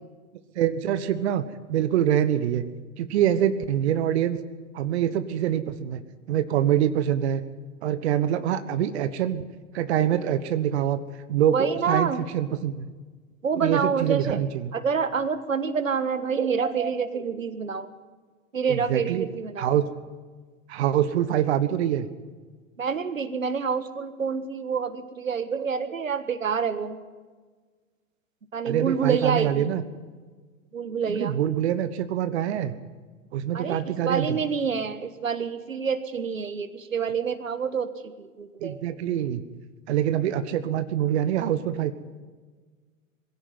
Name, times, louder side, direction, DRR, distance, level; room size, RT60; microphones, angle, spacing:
voice 1, 0.5-2.6 3.0-4.4 4.7-6.0 6.3-7.4 7.8-9.4 9.7-11.0 11.3-12.9 13.6-14.7 18.7-19.3 19.6-19.9 20.7-22.1 28.7-29.8 31.1-32.7 33.3-34.4 38.6-39.4 39.9-41.9, right 10 dB, 55° right, 11 dB, 1.4 m, -25 dB
voice 2, 11.5-12.2 13.4-14.4 14.7-17.9 18.5-19.7 22.8-27.0 28.5-29.7 30.7-31.4 33.5-38.8, right 6 dB, 75° right, 12 dB, 1.6 m, -27 dB
22.5 x 16.5 x 9.6 m, 1.4 s
figure-of-eight pair, 95°, 40 cm